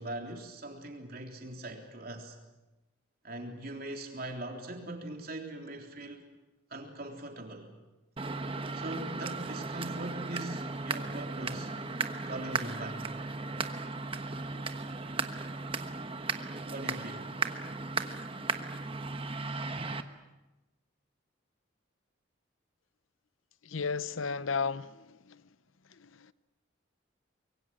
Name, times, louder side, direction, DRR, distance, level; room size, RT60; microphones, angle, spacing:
voice 1, 0.0-2.4 3.2-6.2 6.7-7.7 8.7-11.7 12.2-13.1 16.7-17.3, right 1 dB, 50° right, 2 dB, 3.6 m, -41 dB
sound 1, 8.2-20.0, right 3 dB, 25° right, 1.2 m, -36 dB
voice 2, 23.6-25.4 25.9-26.3, left 5 dB, 85° left, 16 dB, 0.7 m, -34 dB
25.0 x 22.5 x 7.7 m, 1.1 s
head